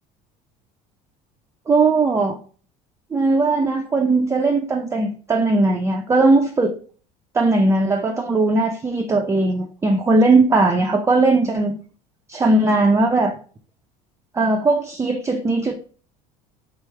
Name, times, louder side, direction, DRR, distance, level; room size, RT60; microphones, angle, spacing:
voice 1, 1.7-2.4 3.1-6.8 7.3-11.8 12.3-13.3 14.3-15.7, right 2 dB, 15° right, 2 dB, 0.5 m, -18 dB
3.7 x 3.1 x 3.3 m, 0.41 s
supercardioid pair, 100°, 17 cm